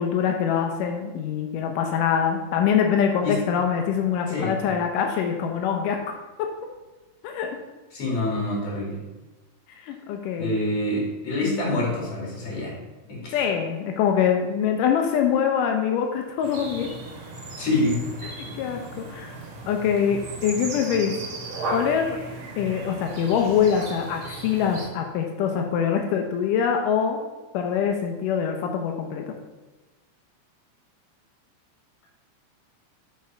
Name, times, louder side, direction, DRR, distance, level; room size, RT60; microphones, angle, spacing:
voice 1, 0.0-6.0 7.2-7.6 9.8-10.6 11.4-11.7 13.3-16.9 18.4-19.4 19.7-21.1 21.7-22.2 22.6-27.2 27.5-29.2, left 7 dB, 85° left, 3 dB, 2.3 m, -24 dB
voice 2, 4.3-4.6 7.9-9.0 10.4-12.7 13.1-13.3 17.6-18.0, left 2 dB, 50° left, -3 dB, 3.6 m, -26 dB
sound 1, 16.4-24.9, right 2 dB, 60° right, 2.6 m, -36 dB
7.3 x 6.1 x 4.4 m, 1.2 s
omnidirectional pair, 3.7 m